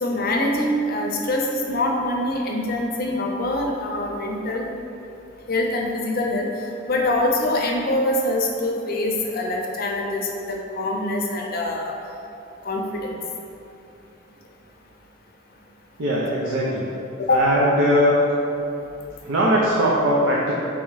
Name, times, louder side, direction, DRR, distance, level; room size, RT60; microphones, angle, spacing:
voice 1, 0.0-4.7 5.5-6.5 6.9-11.9 12.6-13.2 17.2-17.4, left 1 dB, 45° left, 0 dB, 0.5 m, -24 dB
voice 2, 16.0-16.9 17.3-18.2 19.2-20.5, equal, 75° right, -5 dB, 0.5 m, -20 dB
3.6 x 3.0 x 4.7 m, 2.7 s
head